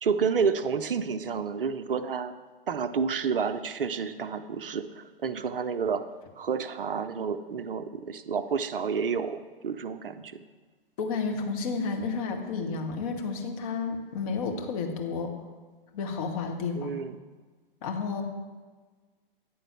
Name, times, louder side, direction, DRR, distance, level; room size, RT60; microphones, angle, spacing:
voice 1, 0.0-2.4 2.7-6.0 6.4-10.4 16.7-17.2, right 6 dB, 70° right, 11 dB, 0.5 m, -30 dB
voice 2, 11.0-15.3 15.9-17.0 17.8-18.2, left 4 dB, 40° left, 4 dB, 1.0 m, -31 dB
9.2 x 3.9 x 5.8 m, 1.4 s
figure-of-eight pair, 110°, 29 cm